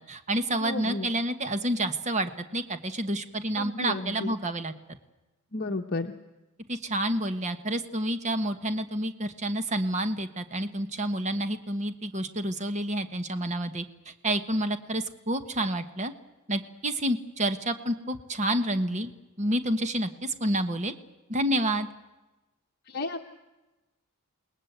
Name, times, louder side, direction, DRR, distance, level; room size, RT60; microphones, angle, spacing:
voice 1, 0.0-4.7 6.7-16.1 16.5-19.1 19.4-20.9 21.3-21.9, right 1 dB, 30° right, 9 dB, 1.3 m, -29 dB
voice 2, 0.6-1.1 3.5-4.4 5.5-6.1 22.9-23.3, left 2 dB, 45° left, 2 dB, 1.2 m, -32 dB
28.5 x 20.5 x 8.1 m, 1.1 s
head